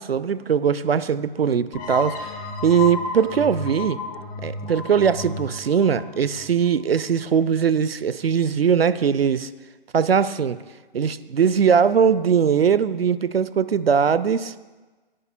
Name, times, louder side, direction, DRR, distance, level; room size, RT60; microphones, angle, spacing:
voice 1, 0.0-2.3 2.6-4.0 4.4-9.5 9.9-10.6 10.9-14.5, right 7 dB, 90° right, 16 dB, 0.6 m, -20 dB
sound 1, 1.7-7.2, left 3 dB, 40° left, 2.2 m, -33 dB
17.5 x 10.0 x 2.2 m, 1.2 s
hypercardioid pair, 130°, 29 cm